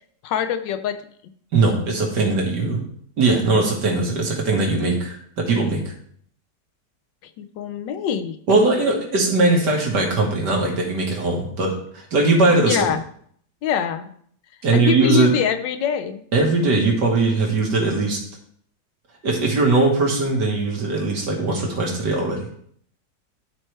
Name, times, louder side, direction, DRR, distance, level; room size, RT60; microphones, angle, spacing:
voice 1, 0.2-1.0 7.4-8.4 12.7-13.0 13.6-14.1 14.7-16.2, left 8 dB, 85° left, 9 dB, 1.4 m, -24 dB
voice 2, 1.5-2.8 3.2-5.9 8.5-11.7 12.1-12.8 14.6-15.3 16.3-18.2 19.2-22.5, right 3 dB, 70° right, -1 dB, 2.1 m, -20 dB
12.5 x 4.5 x 3.3 m, 0.63 s
omnidirectional pair, 1.9 m